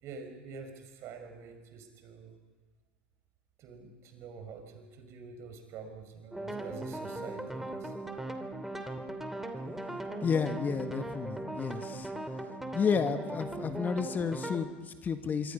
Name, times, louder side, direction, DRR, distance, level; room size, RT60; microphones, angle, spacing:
voice 1, 0.0-2.3 3.6-7.9, right 5 dB, 50° right, 5 dB, 5.3 m, -47 dB
sound 1, 6.3-14.7, right 2 dB, 5° right, 2.8 m, -39 dB
voice 2, 10.2-12.1 12.7-15.5, left 6 dB, 30° left, 9 dB, 1.7 m, -31 dB
25.5 x 25.0 x 5.5 m, 1.3 s
hypercardioid pair, 75°, 6 cm